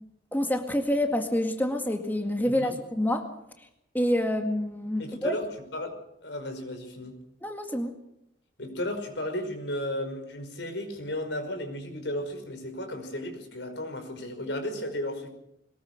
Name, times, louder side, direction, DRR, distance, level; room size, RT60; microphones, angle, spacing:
voice 1, 0.3-3.3 3.9-5.4 7.4-7.9, left 1 dB, 10° left, 4 dB, 2.0 m, -27 dB
voice 2, 5.0-5.4 5.7-5.9 6.2-7.2 8.6-15.3, left 1 dB, 80° left, 6 dB, 5.4 m, -34 dB
22.5 x 20.5 x 6.7 m, 0.78 s
head